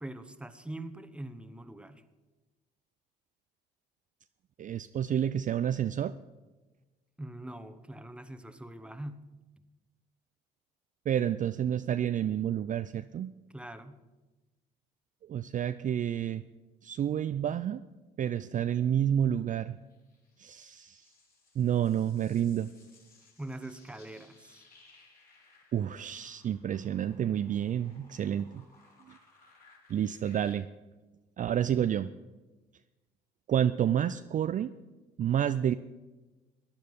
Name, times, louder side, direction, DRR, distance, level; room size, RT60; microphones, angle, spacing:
voice 1, 0.0-2.0 7.2-9.2 13.5-14.0 23.4-24.6, right 1 dB, 5° right, 10 dB, 1.1 m, -43 dB
voice 2, 4.6-6.1 11.1-13.3 15.3-16.4 16.8-17.8 18.2-19.8 20.4-21.0 21.6-22.7 25.7-28.6 29.9-30.7 31.4-32.1 33.5-34.7 35.2-35.7, right 9 dB, 40° right, 11 dB, 0.4 m, -29 dB
sound 1, 19.9-30.5, left 3 dB, 45° left, 4.7 m, -62 dB
16.0 x 10.0 x 5.4 m, 1.2 s
supercardioid pair, 70°, 20 cm